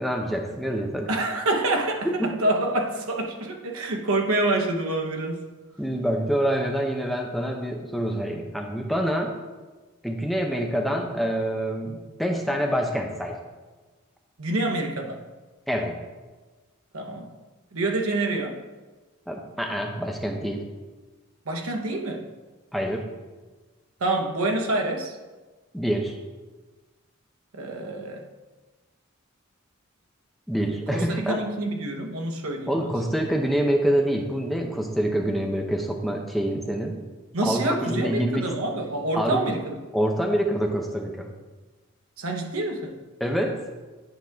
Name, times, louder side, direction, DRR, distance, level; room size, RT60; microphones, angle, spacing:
voice 1, 0.0-1.1 2.0-2.3 5.8-9.3 10.0-13.4 15.7-16.0 19.3-20.6 22.7-23.1 25.7-26.2 30.5-31.4 32.7-37.0 37.4-38.5 39.1-39.5 39.9-41.3 43.2-43.6, equal, ahead, 0.6 m, -26 dB
voice 2, 1.1-5.4 14.4-15.2 16.9-17.3 17.7-18.6 21.5-22.3 24.0-25.1 27.5-28.2 30.7-32.9 37.3-39.8 42.2-43.0, right 2 dB, 85° right, 0.9 m, -27 dB
9.2 x 4.8 x 3.5 m
head